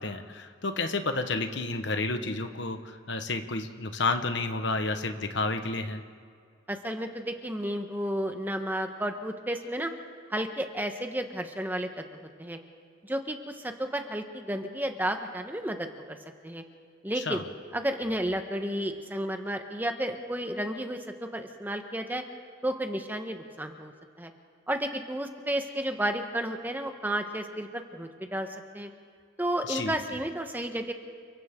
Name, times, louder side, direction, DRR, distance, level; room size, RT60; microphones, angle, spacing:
voice 1, 0.0-6.0 17.2-17.4 29.7-29.9, left 3 dB, 70° left, 7 dB, 1.3 m, -31 dB
voice 2, 6.7-9.9 10.3-12.0 12.4-12.6 13.0-16.2 16.4-16.6 17.0-17.4 17.7-22.2 22.6-23.9 24.2-24.3 24.7-28.5 28.7-28.9 29.4-30.9, right 1 dB, 10° right, 5 dB, 1.1 m, -32 dB
30.0 x 23.5 x 3.8 m, 2.2 s
head